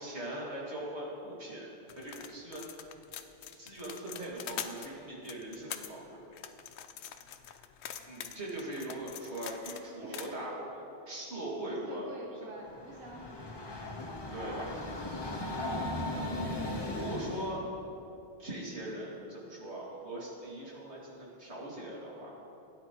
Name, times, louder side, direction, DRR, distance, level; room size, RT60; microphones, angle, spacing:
voice 1, 0.0-1.7 2.0-2.7 3.5-6.2 8.1-12.1 14.3-14.7 16.9-17.7 18.4-22.3, right 1 dB, 85° right, -5 dB, 2.6 m, -40 dB
sound 1, 1.9-4.9 5.2-5.9 6.3-9.8 10.1-10.3, left 9 dB, 85° left, 0.9 m, -44 dB
voice 2, 10.0-10.5 11.8-13.8, right 2 dB, 60° right, -1 dB, 1.2 m, -48 dB
Train, 12.7-17.6, left 1 dB, 25° left, 0.9 m, -37 dB
16.0 x 9.6 x 3.0 m, 2.8 s
omnidirectional pair, 1.1 m